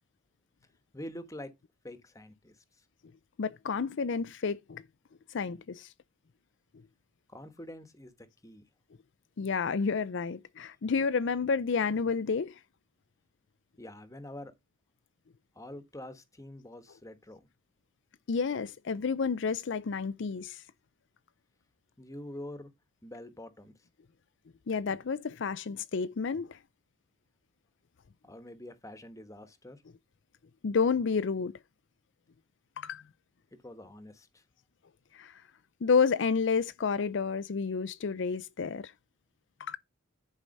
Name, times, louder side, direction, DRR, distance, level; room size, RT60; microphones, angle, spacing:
voice 1, 0.9-1.5 1.8-2.6 7.3-8.6 13.8-14.5 15.5-17.5 22.0-22.7 23.0-23.7 28.2-29.8 33.5-34.4, left 1 dB, 15° left, 1.2 m, -45 dB
voice 2, 3.4-4.8 5.3-5.9 9.4-12.5 18.3-20.6 24.7-26.6 30.6-31.5 32.8-33.0 35.1-35.3 35.8-38.9 39.6-39.8, left 5 dB, 65° left, 0.5 m, -30 dB
10.5 x 4.8 x 5.3 m
head